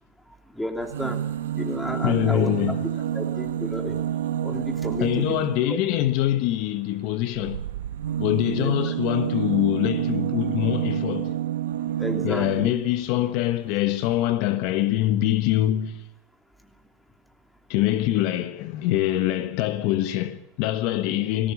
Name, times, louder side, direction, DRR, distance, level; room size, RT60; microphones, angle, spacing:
voice 1, 0.5-1.2 1.5-2.5 3.1-4.0 4.4-5.4 5.7-5.8 8.6-8.9 12.0-12.8, left 1 dB, 5° left, 3.0 m, -32 dB
sound 1, 0.8-5.7 7.3-12.8 13.8-13.9 14.1-14.2, right 10 dB, 85° right, 1.0 m, -28 dB
voice 2, 2.0-2.7 5.0-7.6 8.2-11.4 12.2-16.0 17.7-21.5, left 13 dB, 55° left, 1.1 m, -24 dB
19.5 x 17.0 x 8.4 m
hypercardioid pair, 115°, 0 cm